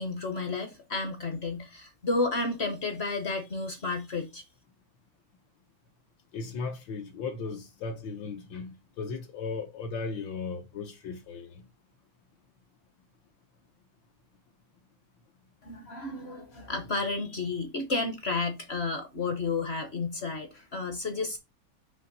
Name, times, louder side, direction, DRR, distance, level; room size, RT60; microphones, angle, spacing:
voice 1, 0.0-4.4 15.6-21.4, left 3 dB, 45° left, 0.9 m, -32 dB
voice 2, 6.3-11.6, left 4 dB, 75° left, 1.6 m, -36 dB
6.2 x 3.1 x 5.2 m
omnidirectional pair, 2.1 m